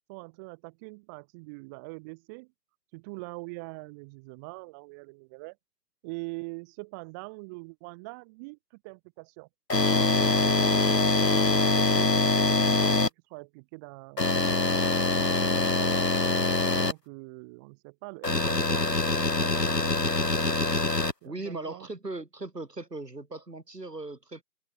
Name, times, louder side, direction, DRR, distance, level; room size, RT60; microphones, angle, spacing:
voice 1, 0.1-2.5 2.9-5.6 6.0-9.5 9.9-12.2 12.6-16.0 16.7-20.5 21.2-21.9, right 29 dB, 10° right, 4.6 m, -43 dB
sound 1, 9.7-13.1 14.2-16.9 18.2-21.1, left 2 dB, 75° left, 4.2 m, -24 dB
voice 2, 21.2-24.4, right 2 dB, 75° right, 7.8 m, -38 dB
figure-of-eight pair, 155°, 49 cm